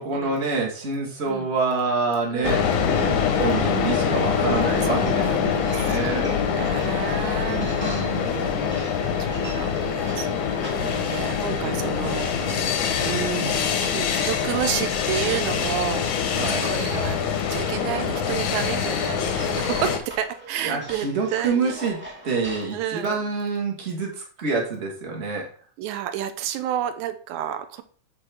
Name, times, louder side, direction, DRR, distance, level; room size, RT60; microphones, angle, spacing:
voice 1, 0.0-6.3 7.4-8.4 10.8-11.2 11.4-12.7 16.3-16.7 20.6-25.5, right 4 dB, 50° right, -1 dB, 0.7 m, -28 dB
voice 2, 2.3-2.7 4.9-8.0 9.3-12.7 13.0-16.4 16.6-21.8 22.7-23.2 25.8-27.8, right 11 dB, 80° right, 9 dB, 1.9 m, -31 dB
sound 1, 2.4-20.0, left 7 dB, 90° left, 2.4 m, -24 dB
sound 2, 3.0-22.7, equal, 15° right, 0.4 m, -40 dB
8.0 x 4.2 x 3.3 m, 0.43 s
omnidirectional pair, 3.5 m